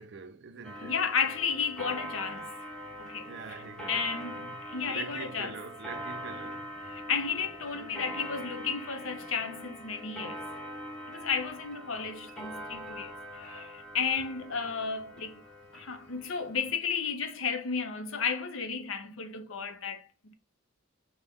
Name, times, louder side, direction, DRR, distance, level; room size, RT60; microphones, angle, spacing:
voice 1, 0.0-0.9 3.2-6.7 7.7-8.0, right 5 dB, 55° right, 0.5 m, -44 dB
Clock, 0.6-16.8, equal, 5° left, 0.5 m, -43 dB
voice 2, 0.8-2.5 3.0-3.6 3.9-5.6 6.8-10.4 11.1-15.4 15.7-20.3, left 6 dB, 75° left, 0.7 m, -33 dB
5.3 x 2.1 x 3.4 m
head